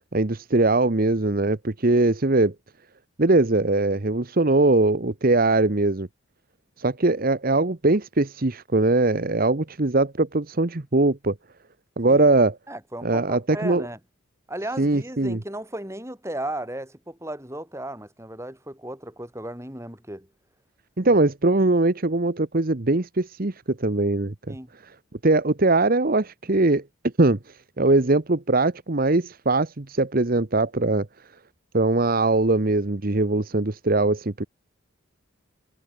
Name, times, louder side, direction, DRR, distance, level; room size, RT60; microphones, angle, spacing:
voice 1, 0.1-2.5 3.2-6.1 6.8-11.3 12.0-12.6 13.0-13.9 14.8-15.4 21.0-24.5 24.8-24.9 25.2-26.8 27.2-27.4 27.8-31.1 31.7-34.5, right 2 dB, 45° right, 1.0 m, -21 dB
voice 2, 12.7-14.0 14.5-20.3 21.0-21.1 24.5-24.7, right 1 dB, 15° right, 7.5 m, -35 dB
head